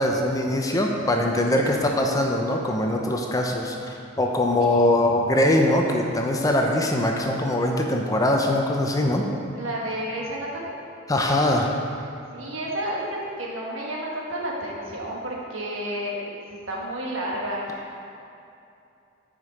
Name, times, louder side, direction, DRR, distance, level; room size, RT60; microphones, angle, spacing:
voice 1, 0.0-9.2 11.1-11.7, left 1 dB, 20° left, 1 dB, 0.5 m, -22 dB
voice 2, 9.5-10.7 12.3-13.1 13.4-16.2 16.5-17.9, right 1 dB, 75° right, -3 dB, 1.3 m, -31 dB
6.8 x 5.2 x 5.0 m, 2.6 s
head